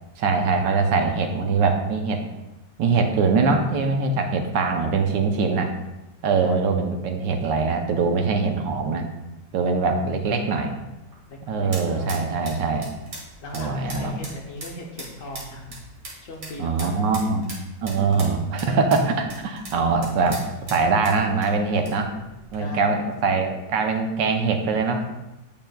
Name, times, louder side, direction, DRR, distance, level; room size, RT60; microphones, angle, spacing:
voice 1, 0.2-2.2 2.8-5.7 6.2-9.1 9.5-10.7 11.5-12.9 13.5-14.2 16.6-17.5 17.8-20.4 20.7-22.1 22.5-25.1, right 4 dB, 80° right, 5 dB, 1.3 m, -22 dB
voice 2, 8.1-8.5 11.3-12.3 13.4-15.8 16.2-17.2 17.9-18.4 22.1-23.1 24.6-25.0, left 1 dB, 60° left, -1 dB, 0.9 m, -39 dB
sound 1, 10.9-22.6, right 1 dB, 50° right, 1.9 m, -42 dB
8.6 x 5.6 x 2.3 m, 0.99 s
omnidirectional pair, 1.9 m